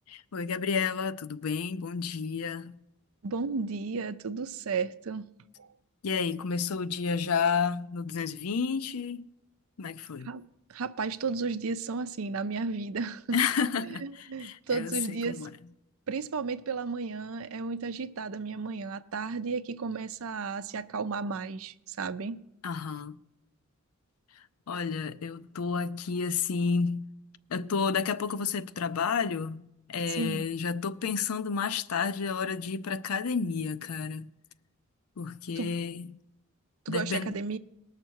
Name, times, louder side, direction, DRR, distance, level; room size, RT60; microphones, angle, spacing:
voice 1, 0.1-2.8 6.0-9.2 9.8-10.3 13.3-15.5 22.6-23.2 24.7-27.1 27.5-29.6 29.9-34.3 35.2-36.2 36.9-37.3, left 5 dB, 85° left, 0.5 m, -31 dB
voice 2, 3.2-5.3 5.6-5.7 10.2-10.4 10.7-13.4 13.9-15.4 16.1-22.4 30.2-30.4 35.6-35.7 36.9-37.6, right 4 dB, 70° right, 0.5 m, -33 dB
19.5 x 6.6 x 4.6 m
head